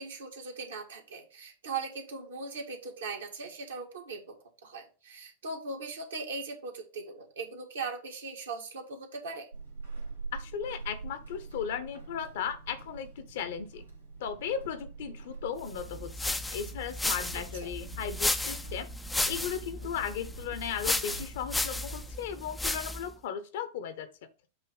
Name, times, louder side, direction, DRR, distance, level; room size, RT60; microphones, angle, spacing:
voice 1, 0.0-4.3 4.6-9.5 17.6-17.7, right 4 dB, 65° right, 2 dB, 1.7 m, -39 dB
Walk footsteps / Squeak, 9.5-22.2, right 4 dB, 85° right, 2.2 m, -45 dB
voice 2, 10.3-13.9 14.2-18.9 19.3-24.1, left 8 dB, 55° left, 11 dB, 1.0 m, -36 dB
sound 1, 15.8-23.1, left 2 dB, 5° left, 0.5 m, -34 dB
8.2 x 3.0 x 5.3 m, 0.34 s
figure-of-eight pair, 90°, 0 cm